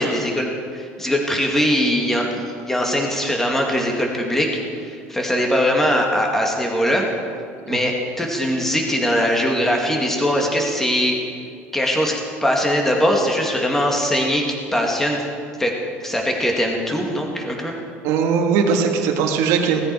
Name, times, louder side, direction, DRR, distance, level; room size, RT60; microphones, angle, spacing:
voice 1, 0.0-4.5 4.8-7.1 7.7-11.2 11.7-14.5 14.7-15.2 15.6-15.8 16.0-17.7, equal, 5° left, 0 dB, 2.2 m, -21 dB
voice 2, 18.0-19.8, right 6 dB, 70° right, 2 dB, 1.8 m, -19 dB
17.5 x 14.0 x 4.8 m, 2.2 s
cardioid pair, 145°, 5 cm